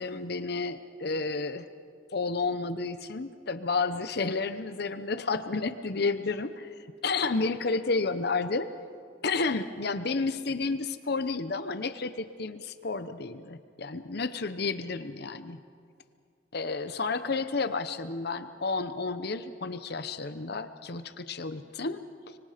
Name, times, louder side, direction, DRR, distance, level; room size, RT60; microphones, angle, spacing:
voice 1, 0.0-1.7 2.1-6.7 7.0-8.7 9.2-15.6 16.5-22.4, left 4 dB, 55° left, 11 dB, 0.8 m, -31 dB
25.0 x 24.5 x 5.1 m, 2.3 s
head